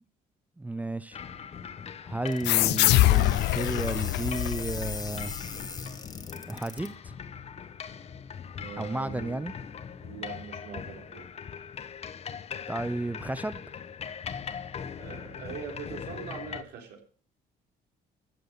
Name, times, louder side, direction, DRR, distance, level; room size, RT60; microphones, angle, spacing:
voice 1, 0.6-1.2 2.0-5.3 6.3-7.1 8.8-9.5 12.7-13.6, right 2 dB, 10° right, 0.6 m, -33 dB
sound 1, 1.1-16.6, left 7 dB, 40° left, 1.0 m, -40 dB
sound 2, 2.3-6.9, left 4 dB, 25° left, 2.0 m, -41 dB
sound 3, 2.5-5.7, left 17 dB, 85° left, 0.6 m, -24 dB
voice 2, 8.6-9.5 10.0-11.3 15.0-17.0, right 6 dB, 85° right, 3.7 m, -42 dB
14.5 x 7.7 x 6.9 m
cardioid pair, 110°, 17 cm